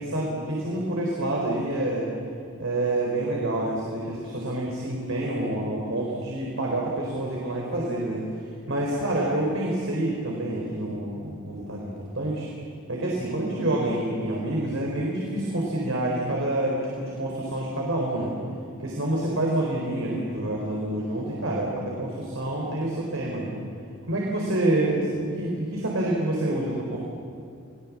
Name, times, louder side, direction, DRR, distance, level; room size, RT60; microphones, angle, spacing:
voice 1, 0.0-2.1 2.6-8.2 8.7-12.5 12.9-18.4 18.8-23.6 24.1-27.0, right 1 dB, 65° right, -2 dB, 4.1 m, -27 dB
28.5 x 19.5 x 7.4 m, 2.6 s
head